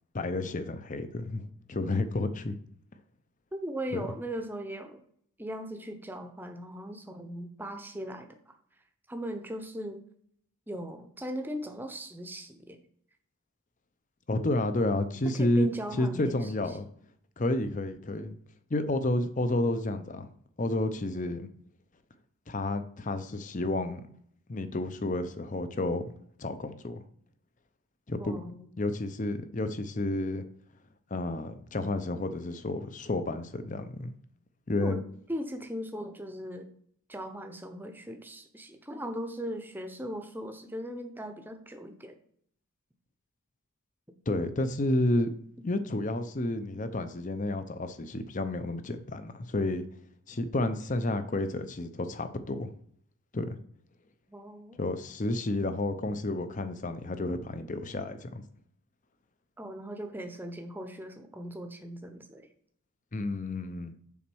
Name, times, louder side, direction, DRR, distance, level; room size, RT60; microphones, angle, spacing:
voice 1, 0.1-2.6 3.9-4.0 14.3-15.7 15.9-16.9 17.4-18.4 18.7-20.3 20.6-21.5 22.5-24.0 24.5-26.0 26.4-27.0 28.1-28.4 28.8-30.4 31.1-34.1 34.7-35.0 44.3-45.3 45.6-49.9 50.3-52.7 53.3-53.6 54.8-58.4 63.1-63.9, left 2 dB, 35° left, 11 dB, 0.6 m, -30 dB
voice 2, 3.5-5.0 5.4-8.5 9.1-10.0 10.7-12.8 15.2-16.5 28.2-28.7 34.8-35.0 35.3-36.7 37.1-42.2 54.3-54.8 59.6-62.4, equal, 10° right, 6 dB, 0.7 m, -38 dB
7.1 x 4.3 x 6.2 m, 0.64 s
head